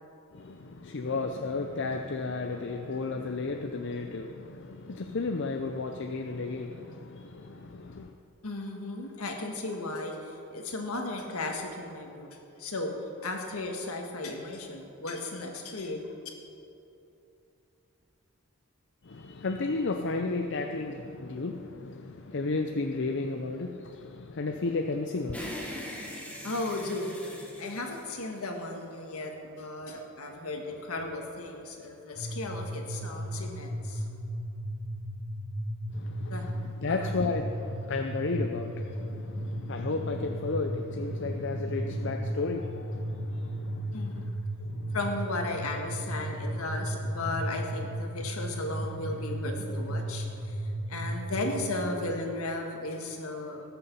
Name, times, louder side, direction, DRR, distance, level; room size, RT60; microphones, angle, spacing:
voice 1, 0.3-8.1 19.0-25.5 35.9-44.3 44.6-45.0 46.3-46.6, left 3 dB, 55° left, 4 dB, 0.6 m, -33 dB
voice 2, 8.4-12.9 13.2-16.1 26.4-27.2 27.6-34.0 36.3-36.5 36.9-37.2 43.9-44.2 44.9-53.6, left 2 dB, 80° left, 2 dB, 1.6 m, -35 dB
sound 1, 25.3-28.8, equal, 5° left, 1.4 m, -41 dB
sound 2, 32.1-51.7, right 1 dB, 20° right, 1.8 m, -35 dB
19.0 x 6.9 x 5.4 m, 2.7 s
head